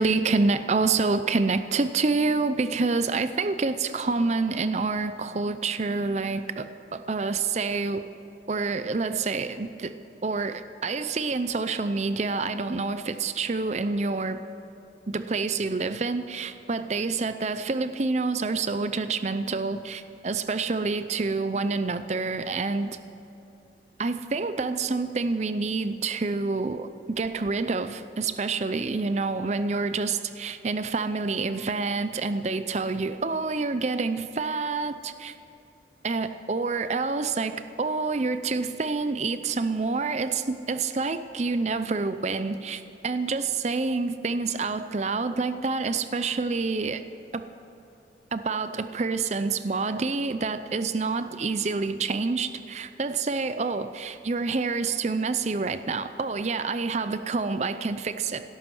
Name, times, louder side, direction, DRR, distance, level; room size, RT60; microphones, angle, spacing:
voice 1, 0.0-8.0 8.5-10.0 10.2-14.4 15.1-23.0 24.0-35.3 36.0-47.0 47.3-47.5 48.3-58.4, right 4 dB, 40° right, 11 dB, 0.5 m, -27 dB
16.5 x 13.0 x 6.2 m, 2.9 s
head